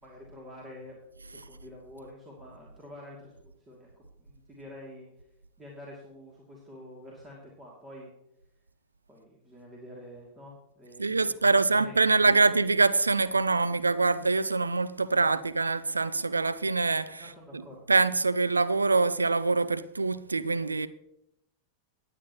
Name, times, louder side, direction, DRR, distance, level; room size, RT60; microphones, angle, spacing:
voice 1, 0.0-1.0 1.2-3.9 4.2-5.1 5.6-8.1 9.1-12.5 17.2-17.9, left 1 dB, 20° right, 2.7 m, -48 dB
voice 2, 11.0-17.6 17.9-20.9, right 3 dB, 80° right, 0.5 m, -25 dB
19.0 x 8.7 x 3.0 m
figure-of-eight pair, 90°, 0 cm